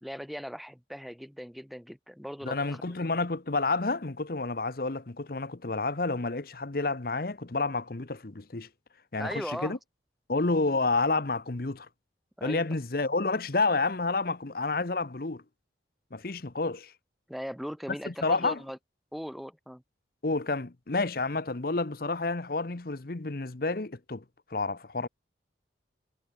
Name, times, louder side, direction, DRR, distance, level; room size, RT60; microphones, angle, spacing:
voice 1, 0.0-2.8 9.2-9.8 12.4-12.8 17.3-18.8 19.1-19.8, equal, ahead, 2.1 m, -39 dB
voice 2, 2.4-8.7 9.1-9.8 10.3-11.9 12.4-15.4 16.1-16.9 18.1-18.6 20.2-24.2 24.5-25.1, left 3 dB, 50° left, 0.9 m, -29 dB
head